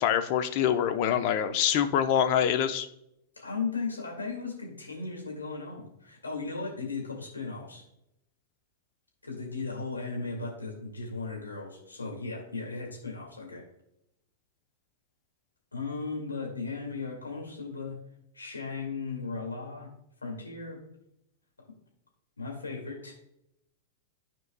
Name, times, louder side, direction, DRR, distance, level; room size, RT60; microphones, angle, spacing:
voice 1, 0.0-2.9, left 9 dB, 50° left, 8 dB, 0.7 m, -25 dB
voice 2, 3.4-7.8 9.2-13.6 15.7-18.0 18.3-19.9 20.2-20.8 22.4-23.1, left 4 dB, 90° left, -1 dB, 2.1 m, -36 dB
12.5 x 4.6 x 2.2 m, 0.79 s
hypercardioid pair, 100°, 0 cm